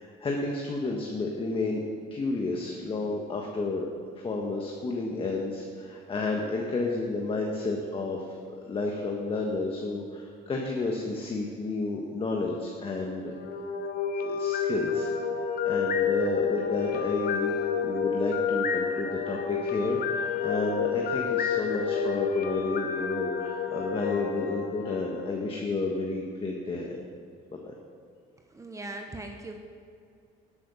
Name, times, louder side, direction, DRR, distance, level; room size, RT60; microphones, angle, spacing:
voice 1, 0.0-1.8 2.1-3.9 4.2-13.4 14.2-15.1 15.3-27.0 27.5-27.7, left 3 dB, 30° left, 0 dB, 1.4 m, -31 dB
sound 1, 13.3-25.4, left 6 dB, 60° left, 1.2 m, -29 dB
voice 2, 28.4-29.6, right 2 dB, 20° right, 3 dB, 1.0 m, -40 dB
11.5 x 8.7 x 5.7 m, 2.3 s
cardioid pair, 110°, 17 cm